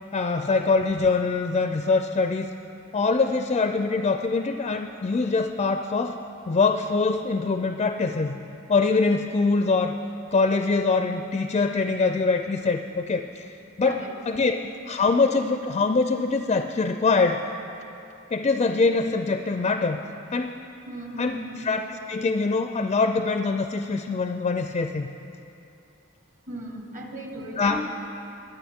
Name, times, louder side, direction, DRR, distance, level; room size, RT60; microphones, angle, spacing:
voice 1, 0.1-2.5 2.9-6.2 6.5-8.4 8.7-10.0 10.3-13.5 13.8-17.4 18.3-20.0 20.3-20.6 21.2-25.1 27.6-27.8, left 4 dB, 30° left, 6 dB, 0.4 m, -24 dB
voice 2, 20.9-21.7 26.5-27.8, equal, 40° right, 2 dB, 1.4 m, -36 dB
21.5 x 9.1 x 3.6 m, 2.8 s
head